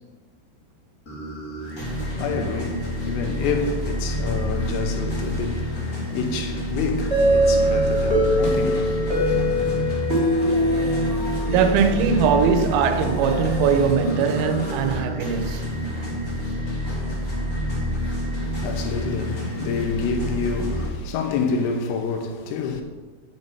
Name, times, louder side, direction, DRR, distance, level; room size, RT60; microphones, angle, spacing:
sound 1, 1.0-20.9, equal, 35° left, 1.4 m, -28 dB
voice 1, 1.6-9.3 18.3-22.8, left 4 dB, 85° left, 3.6 m, -28 dB
sound 2, 7.1-11.8, equal, 15° right, 2.9 m, -22 dB
voice 2, 11.5-15.6, right 6 dB, 80° right, 3.3 m, -21 dB
9.3 x 7.9 x 5.5 m
omnidirectional pair, 5.9 m